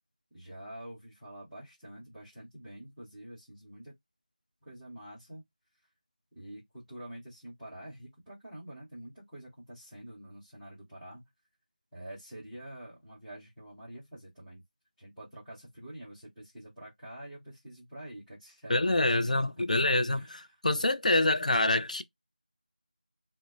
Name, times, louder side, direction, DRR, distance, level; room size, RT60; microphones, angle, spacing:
voice 1, 0.3-3.9 4.6-5.4 6.3-11.3 11.9-14.6 15.0-19.3 20.1-20.6 21.7-21.9, right 1 dB, ahead, 0.6 m, -47 dB
voice 2, 18.7-22.0, left 2 dB, 55° left, 0.3 m, -26 dB
2.1 x 2.0 x 3.1 m
figure-of-eight pair, 170°, 5 cm